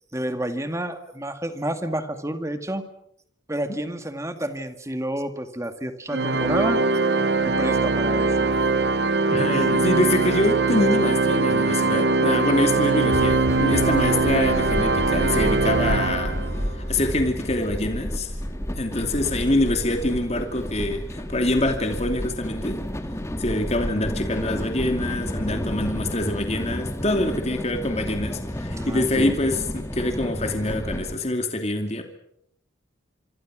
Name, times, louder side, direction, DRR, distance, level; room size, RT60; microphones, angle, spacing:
voice 1, 0.1-2.8 3.5-6.8 7.4-8.6 28.7-29.4, right 1 dB, 15° right, 8 dB, 2.0 m, -29 dB
Organ, 6.1-16.7, right 3 dB, 55° right, 1.0 m, -22 dB
voice 2, 9.3-16.4 16.7-18.3 18.8-22.8 23.4-32.0, left 1 dB, 35° left, 5 dB, 2.7 m, -25 dB
sound 1, 13.1-31.1, equal, 15° left, 2.0 m, -31 dB
26.5 x 25.5 x 6.3 m, 0.74 s
head